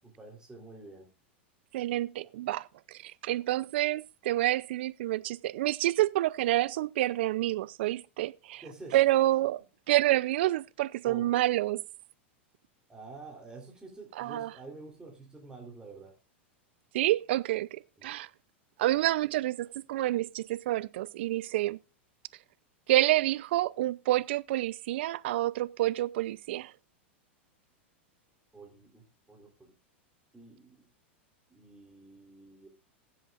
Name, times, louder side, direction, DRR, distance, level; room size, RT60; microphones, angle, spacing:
voice 1, 0.0-1.1 8.6-9.0 11.0-11.3 12.9-16.1 18.0-18.1 28.5-29.7 30.3-30.9 31.5-32.7, right 3 dB, 10° right, 3.5 m, -48 dB
voice 2, 1.7-8.6 8.9-9.6 9.9-11.8 14.2-14.5 16.9-18.3 18.8-21.8 22.9-26.7, right 15 dB, 65° right, 0.5 m, -28 dB
21.0 x 7.9 x 2.5 m
hypercardioid pair, 100°, 6 cm